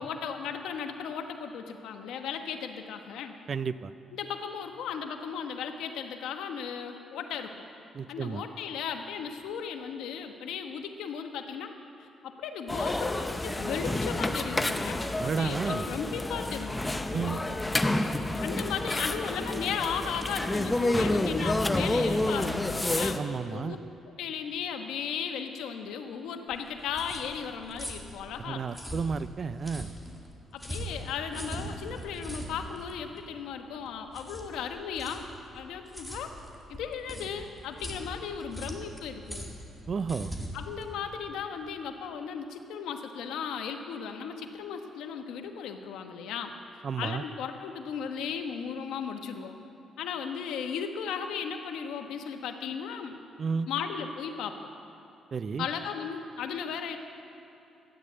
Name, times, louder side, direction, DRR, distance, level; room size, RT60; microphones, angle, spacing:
voice 1, 0.0-3.3 4.1-7.5 8.1-11.7 12.0-16.8 17.1-17.6 18.4-23.2 23.5-23.8 24.1-28.7 30.5-35.3 35.5-36.4 36.7-39.5 40.5-49.6 50.0-53.1 53.7-54.6 55.6-57.0, left 7 dB, 85° left, 5 dB, 1.1 m, -36 dB
voice 2, 3.5-3.9 7.9-8.4 15.2-15.9 17.1-17.4 23.1-23.8 28.4-29.9 39.9-40.3 46.8-47.2 53.4-53.7 55.3-55.7, right 5 dB, 45° right, 15 dB, 0.4 m, -32 dB
sound 1, 12.7-23.2, left 1 dB, 15° left, 0.7 m, -29 dB
sound 2, 26.5-41.7, equal, ahead, 2.1 m, -42 dB
13.0 x 9.5 x 7.9 m, 3.0 s
cardioid pair, 90°, 0 cm